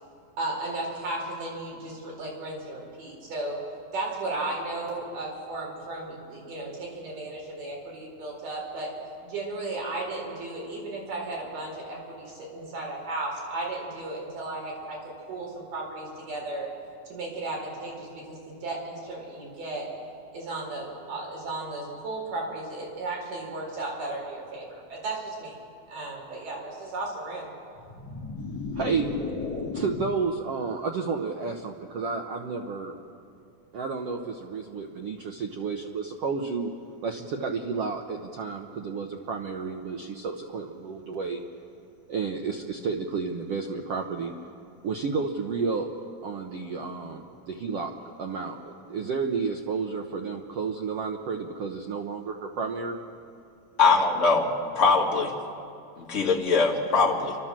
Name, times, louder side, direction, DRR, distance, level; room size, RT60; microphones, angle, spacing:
voice 1, 0.4-3.6 3.9-8.9 9.2-15.0 15.3-16.7 17.1-19.9 20.3-25.6 25.9-27.5, right 2 dB, 60° right, -3 dB, 6.0 m, -35 dB
sound 1, 27.8-30.3, left 4 dB, 45° left, 3.6 m, -34 dB
voice 2, 28.7-29.1 29.7-32.9 33.7-36.7 37.0-41.4 42.1-44.3 44.8-45.9 46.2-47.9 48.2-53.0, right 5 dB, 85° right, 2 dB, 1.3 m, -31 dB
voice 3, 53.8-55.3 56.0-57.4, left 4 dB, 25° left, -2 dB, 1.7 m, -22 dB
29.5 x 12.5 x 7.4 m, 2.4 s
omnidirectional pair, 4.2 m